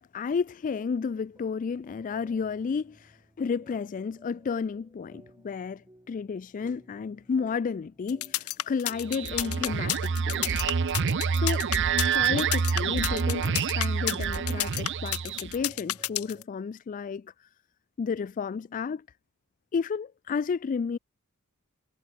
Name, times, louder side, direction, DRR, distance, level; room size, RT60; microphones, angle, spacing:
voice 1, 0.0-5.8 6.1-10.6 11.3-11.7 12.1-17.3 18.0-19.0 19.7-21.0, left 5 dB, 35° left, 0.3 m, -32 dB
sound 1, 0.9-16.4, right 1 dB, 15° right, 4.3 m, -58 dB
sound 2, 8.1-16.4, left 14 dB, 80° left, 1.3 m, -30 dB
sound 3, 9.0-15.6, right 6 dB, 55° right, 0.6 m, -27 dB
head